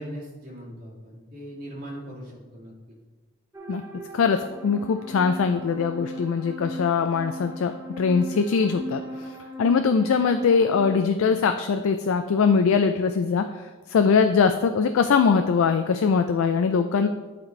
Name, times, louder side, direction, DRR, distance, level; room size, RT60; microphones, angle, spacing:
voice 1, 0.0-2.7, equal, 45° right, -5 dB, 1.9 m, -39 dB
sound 1, 3.5-11.0, right 1 dB, 15° right, 0.7 m, -38 dB
voice 2, 4.1-13.6 13.9-17.1, left 5 dB, 85° left, 8 dB, 0.3 m, -22 dB
10.5 x 4.2 x 3.2 m, 1.3 s
head